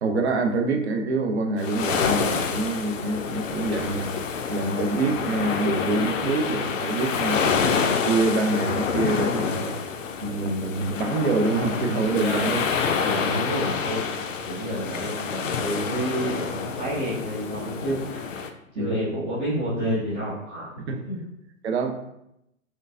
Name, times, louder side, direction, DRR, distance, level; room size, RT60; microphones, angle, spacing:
voice 1, 0.0-4.1 4.5-9.8 10.2-12.7 13.2-13.5 18.8-19.0 20.8-21.0 21.6-21.9, right 3 dB, 55° right, 5 dB, 0.6 m, -26 dB
sound 1, 1.6-18.5, left 6 dB, 70° left, 0.5 m, -28 dB
voice 2, 13.0-14.1 14.4-20.7 21.0-21.2, equal, 10° right, -13 dB, 0.3 m, -29 dB
4.4 x 2.5 x 2.4 m, 0.83 s
figure-of-eight pair, 120°, 40 cm